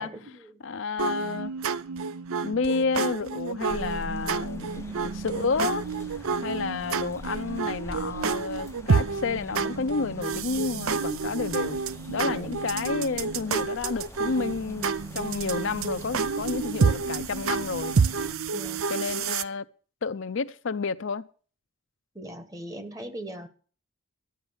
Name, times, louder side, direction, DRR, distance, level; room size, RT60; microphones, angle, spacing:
voice 1, 0.0-0.6 4.6-4.9 12.2-12.7 18.5-18.9 22.1-23.5, right 1 dB, 15° right, 1.1 m, -40 dB
voice 2, 0.6-1.5 2.4-11.8 12.1-14.9 15.1-17.9 18.9-19.7 20.0-21.3, left 4 dB, 60° left, 0.5 m, -30 dB
sound 1, 1.0-19.4, right 5 dB, 75° right, 0.5 m, -29 dB
sound 2, 3.7-18.4, left 1 dB, 15° left, 0.5 m, -45 dB
12.5 x 9.1 x 7.0 m
head